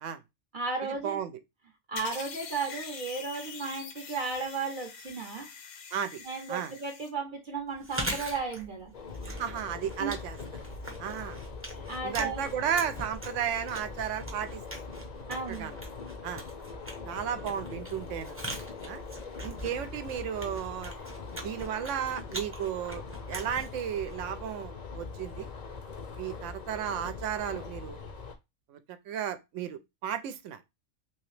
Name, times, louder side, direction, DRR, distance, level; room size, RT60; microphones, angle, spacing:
voice 1, 0.5-1.2 1.9-5.5 6.2-8.9 10.0-10.2 11.9-12.4 15.3-15.7, right 4 dB, 50° right, 0.7 m, -34 dB
voice 2, 1.0-1.4 5.9-6.2 6.5-6.7 9.3-10.4 11.0-11.4 12.0-14.6 15.5-15.8 16.2-16.4 17.1-18.4 18.8-19.0 19.4-20.9 21.3-25.5 26.2-28.0 28.7-30.6, right 8 dB, 80° right, 0.9 m, -34 dB
sound 1, 2.0-7.1, left 6 dB, 75° left, 1.0 m, -44 dB
Chewing mastication, 7.7-24.6, right 1 dB, 15° right, 0.6 m, -42 dB
sound 2, 8.9-28.4, left 4 dB, 45° left, 0.6 m, -42 dB
3.1 x 2.9 x 3.1 m
omnidirectional pair, 1.3 m